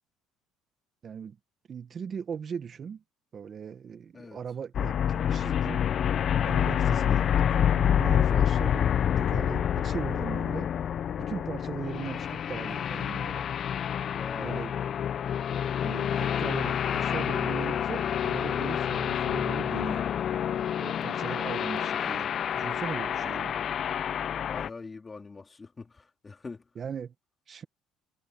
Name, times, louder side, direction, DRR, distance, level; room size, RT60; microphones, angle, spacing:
voice 1, 1.0-1.4 1.7-3.0 3.3-5.8 6.4-10.7 11.2-13.4 14.3-14.7 15.8-20.1 20.8-23.6 26.7-27.1 27.5-27.6, right 7 dB, 40° right, 1.6 m, -39 dB
sound 1, 4.7-24.7, left 9 dB, 50° left, 0.7 m, -28 dB
voice 2, 14.1-14.6 23.2-23.8 24.5-26.6, left 4 dB, 25° left, 3.8 m, -44 dB
supercardioid pair, 90°, 0 cm